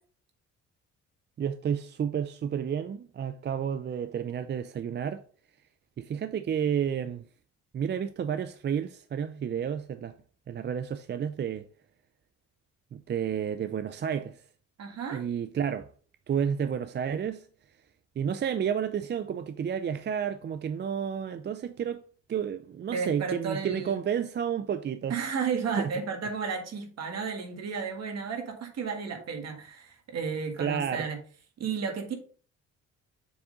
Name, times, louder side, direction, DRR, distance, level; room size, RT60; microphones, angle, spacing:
voice 1, 1.4-5.2 6.0-7.2 7.7-10.1 10.5-11.7 12.9-14.4 15.1-15.9 16.3-17.5 18.2-22.0 22.3-25.2 25.8-25.9 30.6-31.1, right 8 dB, 35° right, 0.4 m, -31 dB
voice 2, 14.8-15.2 22.9-24.0 25.1-31.2 31.6-32.1, right 5 dB, 60° right, 1.7 m, -33 dB
7.0 x 3.6 x 3.8 m
cardioid pair, 90°, 30 cm